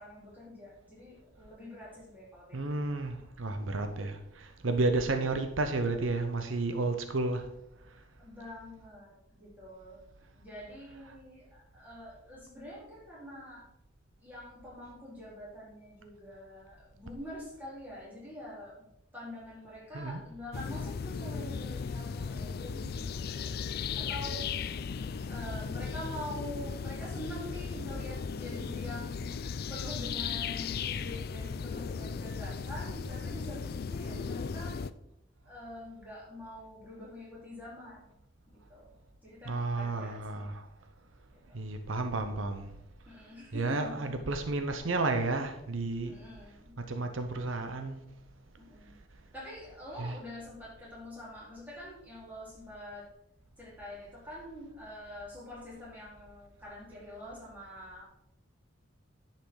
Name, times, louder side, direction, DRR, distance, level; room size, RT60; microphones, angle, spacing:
voice 1, 0.0-2.8 8.2-10.0 10.3-13.6 14.2-18.9 19.1-23.5 24.0-24.4 25.2-29.3 29.7-34.8 35.4-38.0 38.7-38.9 39.2-40.5 41.3-41.6 43.1-44.2 46.0-46.7 48.6-49.0 49.3-53.1 53.6-58.0, left 1 dB, 10° right, -7 dB, 4.2 m, -45 dB
voice 2, 2.5-7.5 19.9-20.2 39.4-40.7 41.5-42.7 43.5-46.1 46.8-48.0 50.0-50.2, right 2 dB, 80° right, 7 dB, 0.8 m, -32 dB
sound 1, 20.5-34.9, left 5 dB, 50° left, 0.4 m, -36 dB
10.0 x 5.9 x 4.9 m, 0.81 s
head